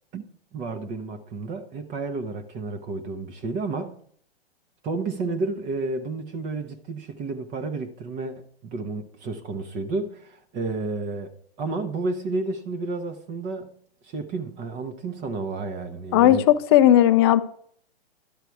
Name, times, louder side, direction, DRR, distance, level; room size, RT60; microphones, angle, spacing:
voice 1, 0.1-4.0 4.8-13.8 14.0-16.5, right 3 dB, 25° right, 0.9 m, -31 dB
voice 2, 16.1-17.4, left 12 dB, 25° left, 0.4 m, -16 dB
12.0 x 8.0 x 4.6 m
figure-of-eight pair, 115°, 31 cm